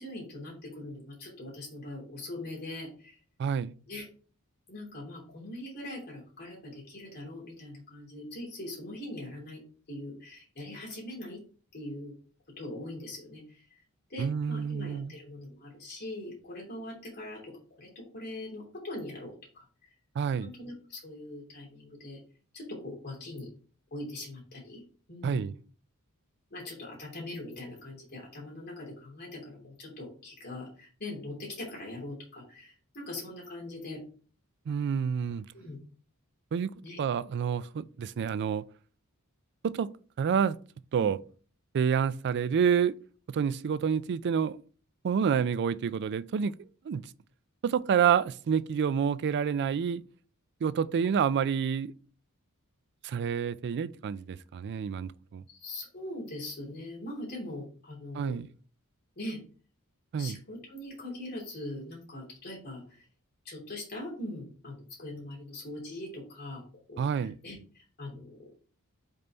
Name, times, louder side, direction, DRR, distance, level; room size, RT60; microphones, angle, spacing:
voice 1, 0.0-3.2 3.9-4.1 4.7-9.6 9.9-11.4 11.7-12.1 12.6-13.8 14.1-17.5 17.8-19.9 20.4-22.2 22.5-23.5 23.9-24.8 25.1-25.4 26.5-34.0 35.5-35.8 36.8-37.0 41.0-41.1 55.5-58.4 59.2-59.4 60.2-63.0 63.4-66.6 66.9-68.5, left 1 dB, 45° left, 3.0 m, -42 dB
voice 2, 3.4-3.7 14.2-15.1 20.2-20.5 25.2-25.5 34.7-35.4 36.5-36.7 37.0-38.6 39.6-39.9 40.2-40.6 40.9-41.2 41.7-42.9 43.3-44.6 45.0-46.5 46.9-47.0 47.6-50.0 50.6-51.9 53.0-55.4 58.1-58.5 60.1-60.4 67.0-67.3, right 7 dB, 50° right, 0.3 m, -28 dB
5.3 x 4.0 x 4.4 m
head